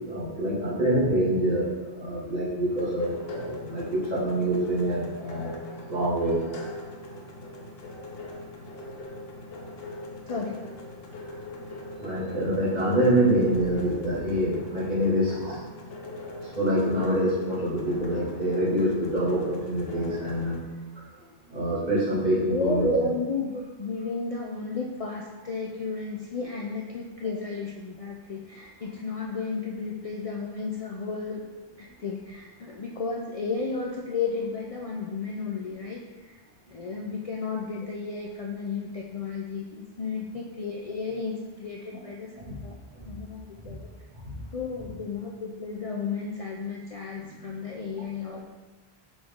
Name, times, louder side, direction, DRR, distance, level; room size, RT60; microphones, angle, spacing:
voice 1, 0.1-1.7 1.9-5.6 5.9-6.4 12.0-15.6 16.6-20.6 21.5-23.0 42.4-42.6 43.0-43.1 43.6-43.7 44.2-44.4 47.3-47.4, right 1 dB, 40° right, -9 dB, 2.1 m, -26 dB
sound 1, 2.7-20.6, left 2 dB, 70° left, 1.1 m, -41 dB
voice 2, 10.3-10.6 22.5-36.4 36.7-43.9 44.5-48.5, left 4 dB, 45° left, -1 dB, 0.5 m, -33 dB
6.1 x 4.8 x 3.6 m, 1.2 s
omnidirectional pair, 1.0 m